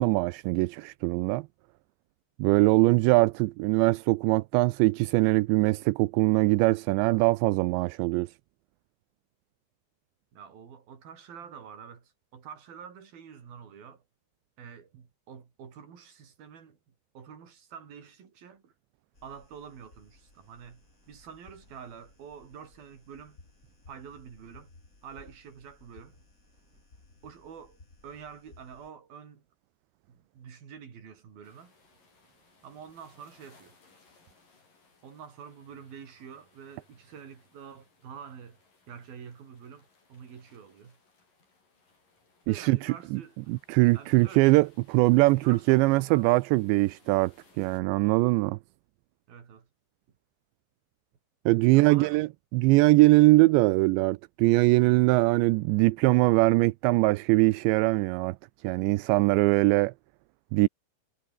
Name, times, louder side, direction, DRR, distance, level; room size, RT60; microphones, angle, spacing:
voice 1, 0.0-1.5 2.4-8.3 42.5-43.2 43.5-48.6 51.5-58.4 58.6-59.9 60.5-60.7, right 22 dB, 85° right, 2.9 m, -22 dB
voice 2, 10.3-14.0 14.6-18.7 19.2-23.4 23.9-24.7 25.0-26.2 27.2-29.4 30.1-31.7 32.6-33.8 35.0-38.6 38.9-41.0 42.5-43.6 43.9-44.5 45.4-46.4 49.3-49.7 51.7-52.2, right 7 dB, 55° right, 5.4 m, -47 dB
sound 1, 19.1-28.9, left 3 dB, 20° left, 3.4 m, -58 dB
sound 2, 31.4-47.8, left 3 dB, 50° left, 9.8 m, -64 dB
omnidirectional pair, 5.1 m